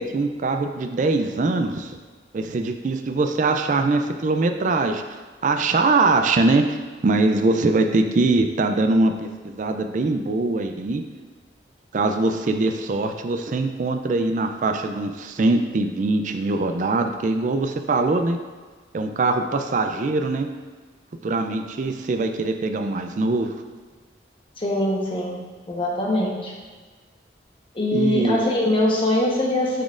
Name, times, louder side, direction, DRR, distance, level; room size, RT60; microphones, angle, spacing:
voice 1, 0.0-2.0 2.3-5.0 5.4-6.8 7.0-9.3 9.6-11.0 11.9-18.4 18.9-20.5 21.2-23.5 27.9-28.4, right 3 dB, 45° right, 6 dB, 0.4 m, -22 dB
voice 2, 24.6-25.4 25.7-26.5 27.7-29.8, left 1 dB, 30° left, -2 dB, 1.1 m, -22 dB
9.3 x 4.1 x 2.5 m, 1.4 s
head